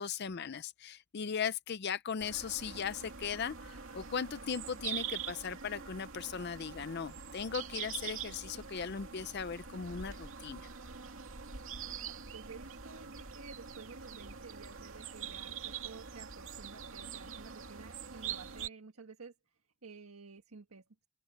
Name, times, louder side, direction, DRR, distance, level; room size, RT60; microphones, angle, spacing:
voice 1, 0.0-10.7, left 6 dB, 50° left, 0.5 m, -38 dB
sound 1, 2.2-18.7, right 7 dB, 65° right, 2.6 m, -44 dB
voice 2, 12.1-21.1, right 4 dB, 80° right, 1.6 m, -52 dB
open air
head